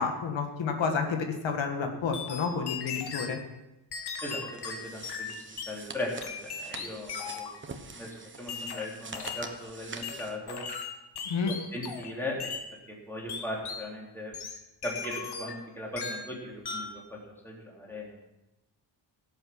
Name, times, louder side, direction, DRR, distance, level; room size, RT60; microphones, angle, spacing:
voice 1, 0.0-3.4 11.3-11.5, left 5 dB, 80° left, 4 dB, 1.8 m, -30 dB
sound 1, 2.1-3.4 3.9-5.8 6.2-7.6 8.5-9.6 10.0-12.1 12.4-12.7 13.3-13.9 14.3-15.6 16.0-16.3 16.6-17.0, left 5 dB, 60° left, 1.6 m, -38 dB
voice 2, 4.2-6.1 6.4-7.5 8.0-10.6 11.7-12.5 12.9-14.3 14.8-17.0 17.4-18.1, left 1 dB, 5° left, -3 dB, 3.4 m, -38 dB
sound 2, 4.5-10.4, right 4 dB, 25° right, 1.1 m, -45 dB
17.0 x 7.9 x 5.9 m, 0.94 s
wide cardioid pair, 165°, 44 cm